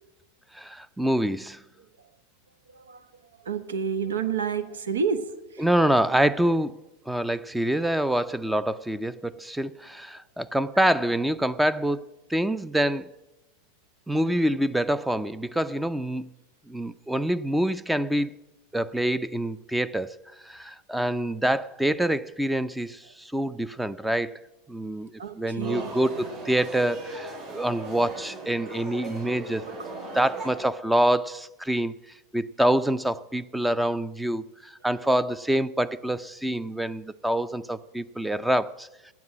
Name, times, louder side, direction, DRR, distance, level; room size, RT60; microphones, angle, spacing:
voice 1, 0.5-1.6 5.6-6.8 7.1-13.1 14.1-16.3 16.7-18.4 18.7-20.2 20.4-24.4 24.7-29.7 30.1-31.9 32.3-38.9, right 1 dB, 5° right, 0.5 m, -26 dB
voice 2, 3.5-5.2 25.2-25.9, right 6 dB, 85° right, 1.0 m, -28 dB
sound 1, 25.6-30.6, right 3 dB, 50° right, 6.0 m, -38 dB
9.5 x 8.0 x 9.5 m
hypercardioid pair, 100°, 0 cm